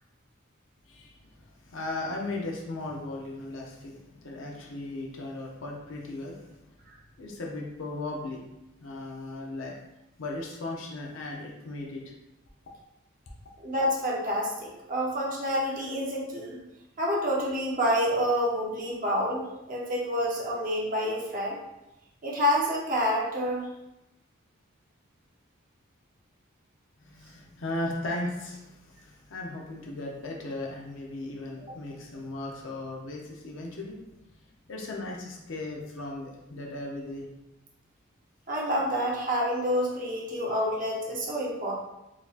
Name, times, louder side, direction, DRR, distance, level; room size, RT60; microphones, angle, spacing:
voice 1, 0.8-6.6 7.2-8.4 8.8-9.8 10.2-12.1 27.0-34.1 34.7-37.3, left 2 dB, 70° left, -2 dB, 0.6 m, -37 dB
voice 2, 13.6-16.6 17.0-21.6 22.2-23.6 38.5-41.7, equal, 40° right, -3 dB, 0.7 m, -28 dB
3.9 x 2.7 x 2.4 m, 0.92 s
head